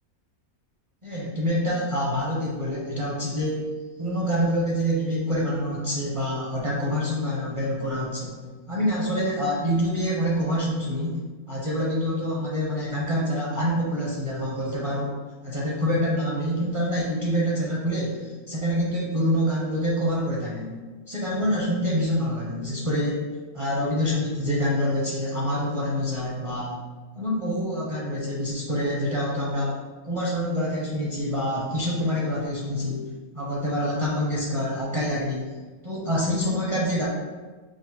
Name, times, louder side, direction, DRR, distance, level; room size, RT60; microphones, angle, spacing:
voice 1, 1.0-3.7 4.0-8.4 8.7-11.2 11.5-15.2 15.4-20.7 21.1-23.2 23.5-26.8 27.1-29.8 30.0-33.0 33.3-35.6 35.8-37.1, equal, 35° right, -6 dB, 0.5 m, -26 dB
4.9 x 2.0 x 4.2 m, 1.3 s
omnidirectional pair, 1.5 m